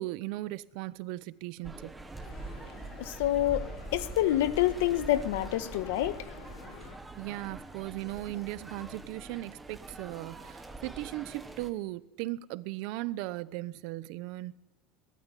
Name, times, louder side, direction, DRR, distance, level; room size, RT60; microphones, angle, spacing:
voice 1, 0.0-2.0 7.2-14.6, right 17 dB, 50° right, 0.8 m, -37 dB
sound 1, 1.6-11.7, right 2 dB, 5° right, 1.5 m, -44 dB
voice 2, 2.4-6.9, left 13 dB, 85° left, 1.4 m, -29 dB
23.0 x 19.5 x 9.9 m
cardioid pair, 175°, 0 cm